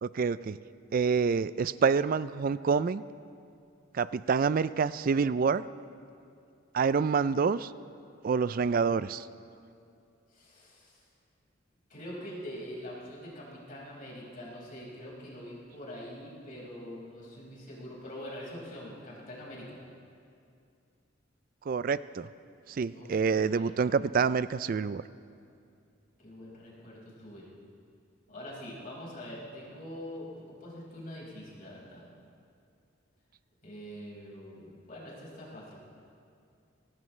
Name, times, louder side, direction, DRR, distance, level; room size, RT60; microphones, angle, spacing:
voice 1, 0.0-0.6 0.9-3.0 3.9-5.6 6.7-7.7 8.2-9.3 21.7-22.3 22.7-25.0, right 5 dB, 45° right, 16 dB, 0.3 m, -27 dB
voice 2, 10.3-11.0 11.9-19.8 22.9-23.8 26.2-27.5 28.3-32.1 33.6-35.8, equal, 45° left, -5 dB, 5.0 m, -44 dB
23.5 x 18.0 x 3.2 m, 2.4 s
head